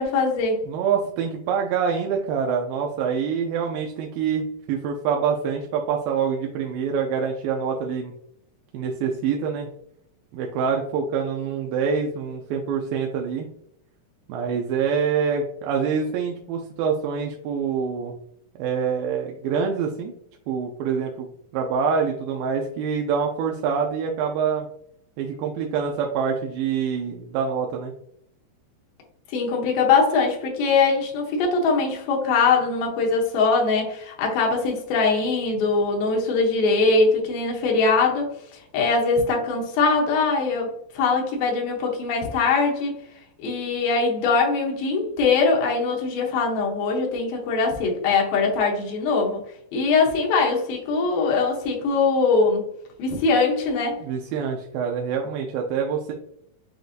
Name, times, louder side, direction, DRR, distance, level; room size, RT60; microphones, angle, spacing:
voice 1, 0.0-0.6 29.3-38.3 38.7-42.9 43.4-49.4 49.7-52.7 53.0-54.0, left 4 dB, 90° left, 0 dB, 2.7 m, -22 dB
voice 2, 0.7-8.1 8.7-9.7 10.3-13.5 14.3-18.2 18.6-20.1 20.5-21.3 21.5-24.7 25.2-27.9 54.0-56.1, right 6 dB, 90° right, 1 dB, 2.4 m, -25 dB
7.8 x 2.6 x 2.5 m, 0.71 s
omnidirectional pair, 4.0 m